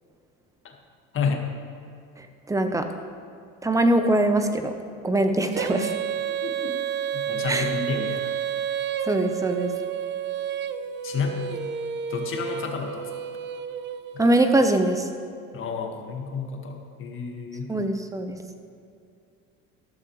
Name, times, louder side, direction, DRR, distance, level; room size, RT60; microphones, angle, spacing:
voice 1, 1.1-1.5 6.4-6.8 7.1-8.3 11.0-11.7 12.1-13.1 15.5-17.7, left 5 dB, 40° left, 2 dB, 1.8 m, -30 dB
voice 2, 2.2-2.9 3.6-4.8 5.0-5.9 7.5-7.7 9.0-9.7 14.2-15.1 17.7-18.4, right 1 dB, 10° right, 7 dB, 0.9 m, -22 dB
Female singing, 5.5-14.3, right 8 dB, 35° right, 0.5 m, -30 dB
14.0 x 12.0 x 3.3 m, 2.5 s
supercardioid pair, 115°, 31 cm